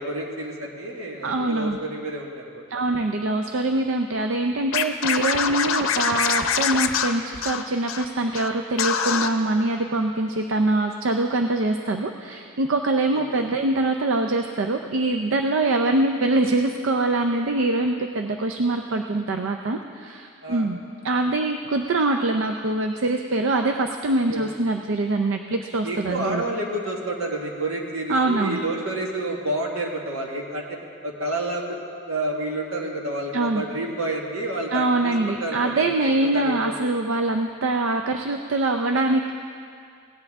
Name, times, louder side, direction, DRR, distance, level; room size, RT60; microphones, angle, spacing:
voice 1, 0.0-2.6 13.1-13.5 20.4-20.7 24.3-24.5 25.8-30.6 31.0-31.8 32.1-36.7, right 1 dB, 80° right, -1 dB, 1.7 m, -29 dB
voice 2, 1.2-1.8 2.7-20.8 21.0-26.4 28.1-28.6 33.3-33.6 34.7-39.3, right 2 dB, 65° right, 5 dB, 0.5 m, -24 dB
Scratching (performance technique), 4.7-8.0 8.3-8.5 8.8-9.3, left 7 dB, 75° left, 0.6 m, -24 dB
17.5 x 10.0 x 3.6 m, 2.2 s
head